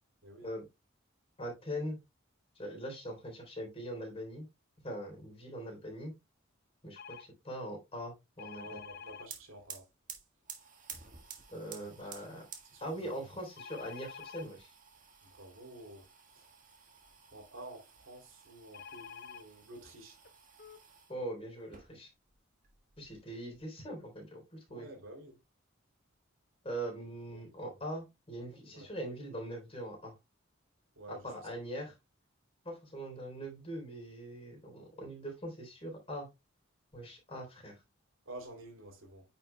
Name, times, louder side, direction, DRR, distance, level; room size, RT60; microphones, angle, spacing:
voice 1, 0.2-0.5 8.5-9.8 11.7-12.2 12.6-13.1 15.3-16.1 16.3-16.5 17.3-20.2 24.7-25.4 28.7-28.9 31.0-31.5 38.3-39.2, right 1 dB, 85° right, 2.9 m, -50 dB
voice 2, 1.4-2.0 2.6-4.5 4.8-6.1 6.8-8.8 11.5-12.4 12.8-14.7 21.1-22.1 23.0-24.9 26.6-30.2 31.1-31.9 32.6-36.3 36.9-37.8, equal, 30° left, 3.6 m, -42 dB
sound 1, 7.0-7.3 8.4-9.3 13.6-14.5 18.7-19.4 20.2-20.3 20.6-20.8, left 6 dB, 50° left, 0.6 m, -48 dB
sound 2, 8.9-9.0 9.2-21.1 21.6-22.4 22.6-23.6, right 7 dB, 40° right, 1.6 m, -53 dB
9.3 x 5.8 x 2.2 m
head